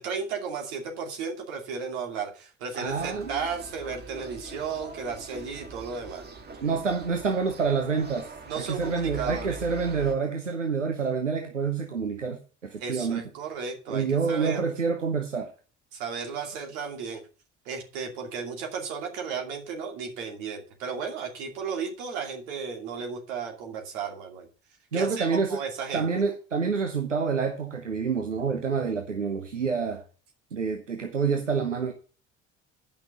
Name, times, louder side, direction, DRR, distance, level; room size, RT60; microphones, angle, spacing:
voice 1, 0.0-6.2 8.5-9.6 12.8-14.7 15.9-17.2 17.6-24.5 24.9-26.1, right 6 dB, 65° right, 2.7 m, -34 dB
voice 2, 2.7-3.4 6.6-13.2 13.9-15.5 24.9-25.6 25.9-30.0 30.5-31.9, right 5 dB, 85° right, 0.9 m, -28 dB
sound 1, 2.8-10.1, right 3 dB, 25° right, 1.9 m, -43 dB
10.5 x 6.0 x 6.9 m
figure-of-eight pair, 55°, 36 cm